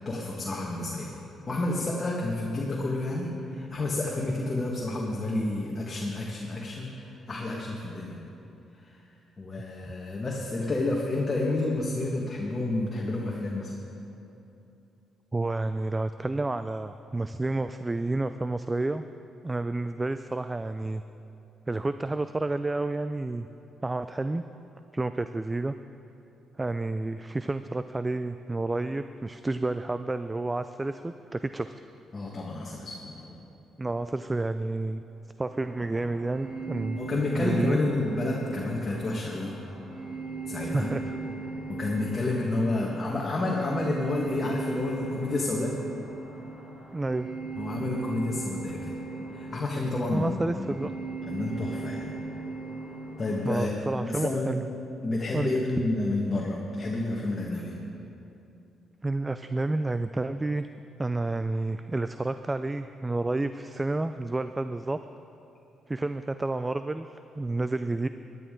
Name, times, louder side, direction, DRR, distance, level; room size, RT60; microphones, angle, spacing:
voice 1, 0.0-1.1 1.5-8.2 8.8-9.0 9.4-13.7 32.1-33.4 36.9-39.5 40.4-40.9 41.7-45.7 47.6-49.0 49.3-50.8 51.3-52.1 53.2-53.7 54.0-54.5 55.0-57.7, left 2 dB, 30° left, -3 dB, 1.5 m, -30 dB
voice 2, 15.3-19.1 19.4-21.0 21.7-23.5 23.8-24.5 24.9-25.8 26.6-31.7 33.8-35.0 35.4-37.0 37.3-37.8 40.6-41.2 46.9-47.3 50.1-50.9 53.4-54.7 55.3-55.6 59.0-60.7 61.0-65.0 65.9-68.1, right 2 dB, 20° right, 10 dB, 0.3 m, -30 dB
sound 1, 35.5-53.4, right 3 dB, 35° right, 2.2 m, -38 dB
16.5 x 11.0 x 3.8 m, 2.9 s
cardioid pair, 90°, 0 cm